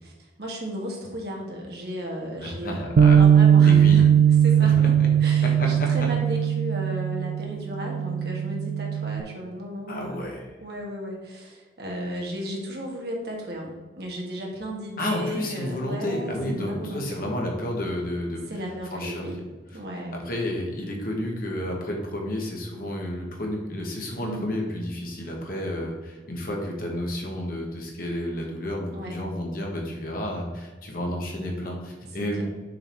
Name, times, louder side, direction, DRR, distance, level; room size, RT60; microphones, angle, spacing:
voice 1, 0.0-4.1 4.4-4.9 5.2-10.2 10.6-17.1 18.5-19.4 19.7-20.2 24.2-24.5 28.9-29.1 32.2-32.4, equal, 55° right, -1 dB, 1.6 m, -35 dB
voice 2, 2.4-3.2 3.6-4.0 4.6-5.1 5.4-5.9 9.9-10.5 15.0-18.5 18.9-19.3 20.3-32.4, left 1 dB, 50° left, 0 dB, 1.4 m, -31 dB
Bass guitar, 3.0-9.2, right 8 dB, 90° right, 0.4 m, -19 dB
6.6 x 4.1 x 4.6 m, 1.3 s
head